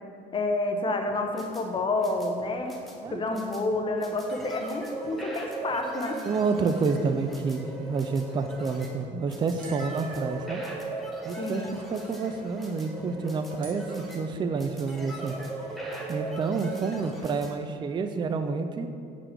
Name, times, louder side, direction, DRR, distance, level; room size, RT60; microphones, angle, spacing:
voice 1, 0.3-2.7 3.1-6.2 11.4-11.7, left 2 dB, 30° left, 5 dB, 0.6 m, -29 dB
sound 1, 1.1-17.5, right 2 dB, ahead, 0.9 m, -39 dB
voice 2, 3.0-3.4 6.2-10.6 11.2-15.3 16.1-18.9, right 4 dB, 25° right, 8 dB, 0.3 m, -29 dB
sound 2, 5.8-7.3 9.6-11.3 13.6-14.7, right 6 dB, 55° right, 1.6 m, -50 dB
6.5 x 4.0 x 4.4 m, 2.4 s
cardioid pair, 110°, 17 cm